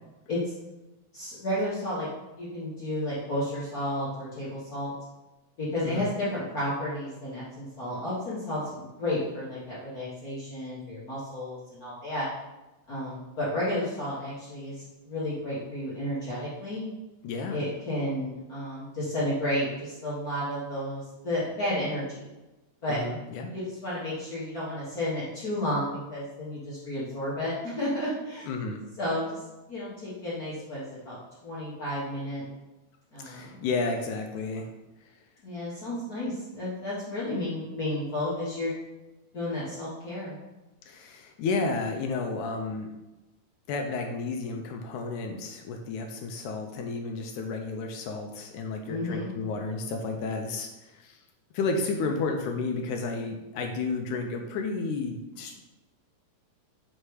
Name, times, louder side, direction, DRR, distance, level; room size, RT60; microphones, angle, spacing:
voice 1, 1.1-2.1 2.4-4.9 5.6-12.3 12.9-16.9 17.5-22.2 22.8-23.0 23.5-28.5 29.0-29.4 29.7-31.2 31.4-32.4 33.1-33.7 35.4-38.7 39.3-40.4 48.8-49.3, left 1 dB, 50° left, -9 dB, 1.1 m, -32 dB
voice 2, 17.2-17.6 22.9-23.5 28.5-28.8 33.2-34.7 40.9-42.9 43.7-51.2 51.5-55.6, left 3 dB, 80° left, 3 dB, 1.9 m, -32 dB
6.5 x 3.3 x 4.7 m, 1.0 s
omnidirectional pair, 3.8 m